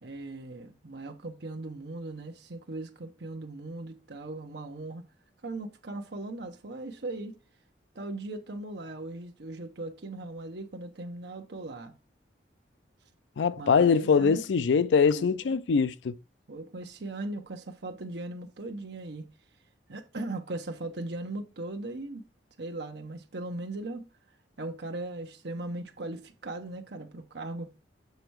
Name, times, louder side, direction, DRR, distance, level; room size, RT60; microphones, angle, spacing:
voice 1, 0.0-5.0 5.4-7.4 7.9-11.9 13.6-14.4 15.1-15.6 16.5-19.3 19.9-22.2 22.6-24.1 24.6-27.7, right 2 dB, 65° right, 0.9 m, -38 dB
voice 2, 13.4-16.2, left 5 dB, 75° left, 0.4 m, -23 dB
6.9 x 4.4 x 4.6 m
head